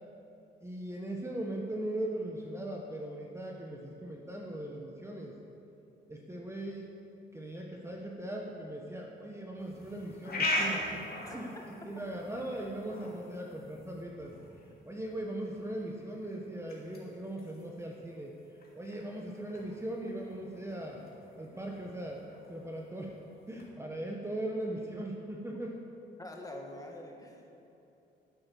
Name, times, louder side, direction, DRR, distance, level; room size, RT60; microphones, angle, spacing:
voice 1, 0.6-5.3 6.1-6.9 7.3-11.1 11.3-11.6 11.8-14.3 14.8-18.3 18.7-21.0 21.4-22.2 22.5-23.2 23.5-25.8, right 1 dB, 15° right, 0 dB, 1.2 m, -39 dB
sound 1, 9.6-23.7, left 1 dB, 50° left, 2.7 m, -41 dB
voice 2, 11.2-11.6 26.2-27.6, left 1 dB, 15° left, 1 dB, 1.9 m, -46 dB
10.5 x 8.8 x 7.0 m, 2.9 s
cardioid pair, 90°, 20 cm